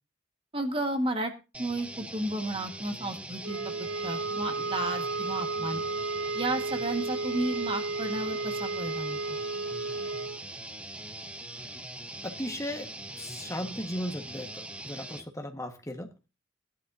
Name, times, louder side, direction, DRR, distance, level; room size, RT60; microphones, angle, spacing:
voice 1, 0.5-1.3 1.6-5.8 6.3-9.4, right 1 dB, 25° right, 6 dB, 1.6 m, -33 dB
sound 1, 1.5-15.2, right 1 dB, 5° right, 0.6 m, -42 dB
sound 2, 3.4-10.4, right 3 dB, 80° right, 0.6 m, -33 dB
voice 2, 12.2-16.1, equal, 15° left, 5 dB, 1.4 m, -36 dB
17.5 x 11.5 x 2.7 m, 0.29 s
head